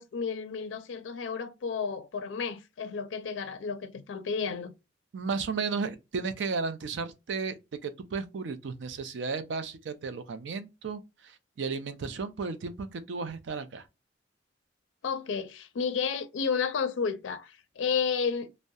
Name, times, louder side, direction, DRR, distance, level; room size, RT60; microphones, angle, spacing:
voice 1, 0.0-4.7 15.0-18.5, left 6 dB, 85° left, 0.4 m, -32 dB
voice 2, 5.1-7.5 7.8-13.8, right 4 dB, 70° right, 0.4 m, -34 dB
2.6 x 2.1 x 2.2 m
head